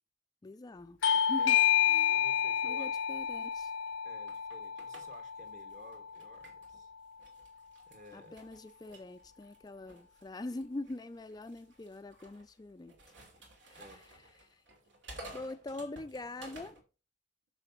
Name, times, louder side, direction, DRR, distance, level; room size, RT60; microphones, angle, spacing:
voice 1, 0.4-1.0 1.3-1.6 1.9-2.2 2.6-3.7 8.1-12.9 13.6-14.6 15.3-16.8, left 2 dB, 20° left, 0.4 m, -43 dB
Bell / Doorbell, 1.0-6.2, left 9 dB, 85° left, 0.5 m, -30 dB
voice 2, 2.1-3.0 4.0-6.9 7.9-8.4 13.7-14.0, equal, 40° right, 1.6 m, -55 dB
sound 1, 2.8-6.8 7.2-16.8, right 2 dB, 80° right, 3.0 m, -54 dB
6.9 x 6.6 x 5.6 m
head